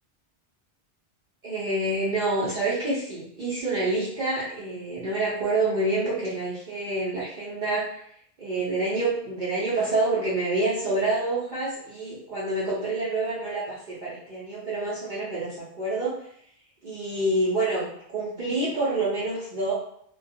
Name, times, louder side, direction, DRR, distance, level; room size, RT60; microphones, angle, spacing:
voice 1, 1.4-8.1 8.4-16.2 16.8-19.7, right 2 dB, 50° right, -9 dB, 0.7 m, -27 dB
2.2 x 2.2 x 2.6 m, 0.67 s
omnidirectional pair, 1.2 m